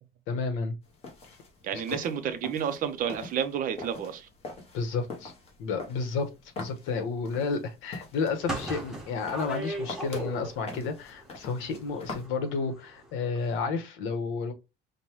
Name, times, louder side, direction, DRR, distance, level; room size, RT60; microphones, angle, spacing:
voice 1, 0.3-0.8 1.9-2.0 4.7-5.3 5.6-6.3 6.6-14.5, left 4 dB, 75° left, 1.2 m, -31 dB
sound 1, 0.8-12.3, left 3 dB, 30° left, 0.9 m, -45 dB
voice 2, 1.6-4.3, right 8 dB, 45° right, 0.6 m, -30 dB
sound 2, 8.4-10.8 11.1-12.6 12.9-13.1 13.3-13.5, right 1 dB, ahead, 0.9 m, -36 dB
5.3 x 2.2 x 3.0 m
cardioid pair, 180°, 21 cm